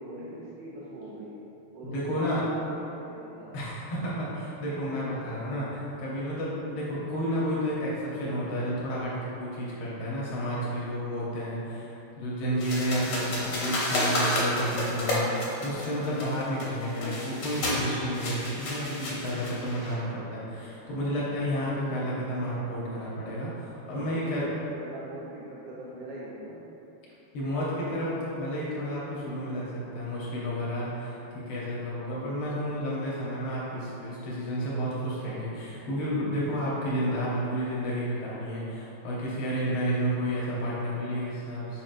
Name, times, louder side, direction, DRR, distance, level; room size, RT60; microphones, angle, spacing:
voice 1, 0.0-1.5 1.7-3.6 23.8-26.6, right 1 dB, 70° right, -7 dB, 1.1 m, -41 dB
voice 2, 1.8-2.4 3.5-24.5 27.3-31.2 31.5-41.8, equal, 85° left, -7 dB, 1.8 m, -31 dB
sound 1, 12.6-19.9, left 1 dB, 65° left, 1.4 m, -31 dB
4.9 x 4.4 x 2.5 m, 2.9 s
omnidirectional pair, 2.3 m